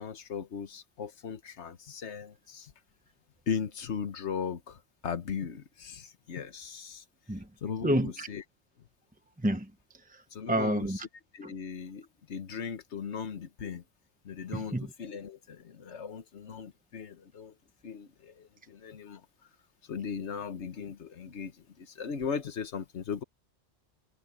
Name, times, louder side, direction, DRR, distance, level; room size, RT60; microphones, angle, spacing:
voice 1, 0.0-2.7 3.5-7.0 7.6-8.4 10.3-11.0 11.3-13.8 14.2-17.5 17.8-19.2 19.9-23.2, left 6 dB, 75° left, 1.4 m, -38 dB
voice 2, 7.8-8.3 9.4-9.7 10.1-10.2 10.5-11.0 11.4-11.5 14.5-14.9, right 1 dB, 10° right, 0.9 m, -29 dB
omnidirectional pair, 1.2 m